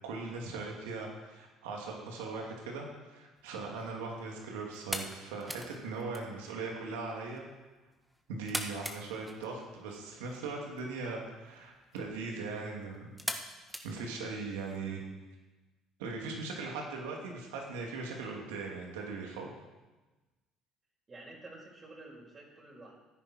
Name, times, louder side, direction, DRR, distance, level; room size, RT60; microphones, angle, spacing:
voice 1, 0.0-7.4 8.3-13.1 13.8-15.0 16.0-19.5, right 3 dB, 85° right, 0 dB, 2.8 m, -39 dB
sound 1, 3.4-14.8, equal, 5° right, 1.6 m, -44 dB
voice 2, 21.1-22.9, right 2 dB, 35° right, -4 dB, 5.1 m, -50 dB
15.5 x 9.9 x 4.5 m, 1.2 s
hypercardioid pair, 70°, 0 cm